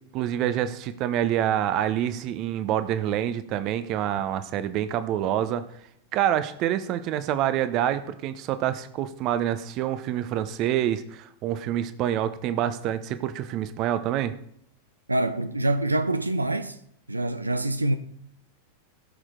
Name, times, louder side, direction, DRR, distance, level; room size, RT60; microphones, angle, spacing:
voice 1, 0.1-5.6 6.1-14.3, right 11 dB, 40° right, 0.9 m, -27 dB
voice 2, 15.1-16.8 17.1-18.0, right 2 dB, 80° right, 0.6 m, -25 dB
16.5 x 6.3 x 3.8 m
figure-of-eight pair, 90°, 0 cm